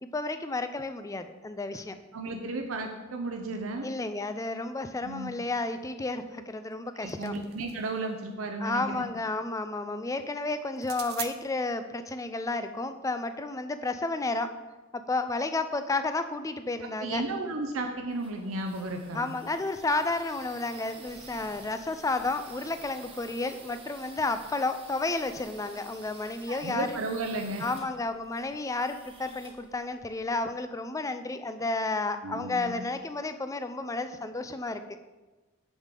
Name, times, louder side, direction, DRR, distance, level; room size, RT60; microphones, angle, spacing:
voice 1, 0.0-2.0 3.8-7.3 8.6-14.5 14.9-17.2 19.1-27.0 27.6-34.8, left 3 dB, 15° left, 9 dB, 0.4 m, -32 dB
voice 2, 2.1-3.9 5.0-5.3 7.0-9.1 17.0-19.3 26.5-27.7 32.2-32.8, right 2 dB, 90° right, 3 dB, 0.7 m, -34 dB
sound 1, 6.7-8.0 10.8-11.3, right 11 dB, 50° right, 0.6 m, -41 dB
sound 2, 17.7-30.5, right 3 dB, 25° right, 1.2 m, -51 dB
7.3 x 7.0 x 3.8 m, 1.2 s
head